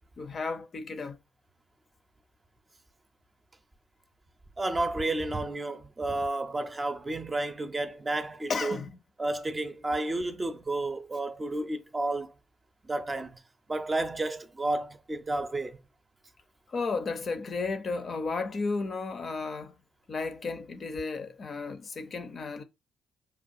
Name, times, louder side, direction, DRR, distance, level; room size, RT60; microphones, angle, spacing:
voice 1, 0.2-1.2 8.5-8.9 16.7-19.7 20.1-22.6, left 4 dB, 50° left, 0.6 m, -33 dB
voice 2, 4.6-8.8 9.2-12.3 12.8-13.4 13.7-15.8, right 2 dB, 25° right, 0.6 m, -31 dB
5.3 x 2.3 x 2.6 m
supercardioid pair, 65°, 0 cm